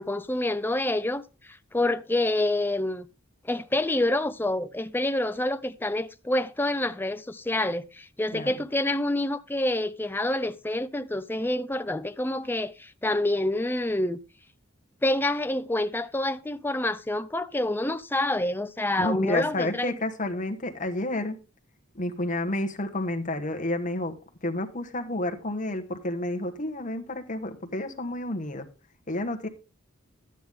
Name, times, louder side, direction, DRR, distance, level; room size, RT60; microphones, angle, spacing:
voice 1, 0.0-3.1 3.4-14.2 15.0-20.0, left 1 dB, 10° left, 0.5 m, -27 dB
voice 2, 19.0-21.4 22.0-24.1 24.4-28.7 29.1-29.5, left 1 dB, 40° left, 1.4 m, -30 dB
12.5 x 9.2 x 3.6 m
head